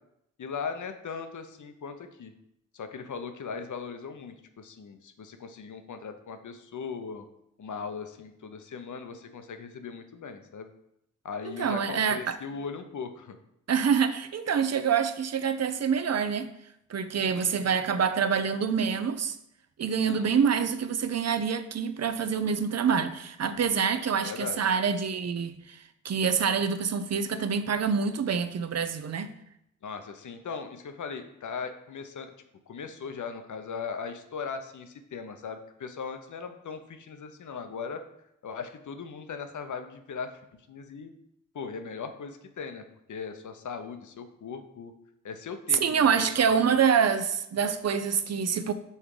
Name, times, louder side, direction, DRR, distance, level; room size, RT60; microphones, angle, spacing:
voice 1, 0.4-2.3 2.7-7.2 7.6-10.7 11.2-13.4 17.3-17.8 20.0-20.3 24.2-24.6 29.8-32.3 32.7-38.0 38.4-40.3 40.7-41.1 41.5-42.8 43.1-44.9 45.2-46.8, left 5 dB, 60° left, 0.8 m, -39 dB
voice 2, 11.4-12.4 13.7-16.5 16.9-19.4 19.8-29.3 45.7-48.7, right 6 dB, 50° right, 0.6 m, -26 dB
5.6 x 3.6 x 4.8 m
supercardioid pair, 45°, 33 cm